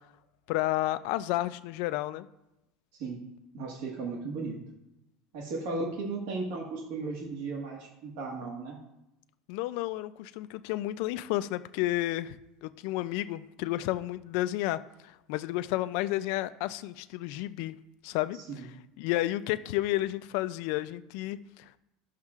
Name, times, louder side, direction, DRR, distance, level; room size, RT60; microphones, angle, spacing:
voice 1, 0.5-2.3 9.5-17.7 18.0-18.4 19.0-21.8, left 16 dB, 55° left, 13 dB, 0.3 m, -31 dB
voice 2, 3.5-4.6 5.3-8.8 18.5-18.6, right 3 dB, 65° right, 0 dB, 1.5 m, -35 dB
13.0 x 6.4 x 2.4 m, 0.90 s
cardioid pair, 175°, 0 cm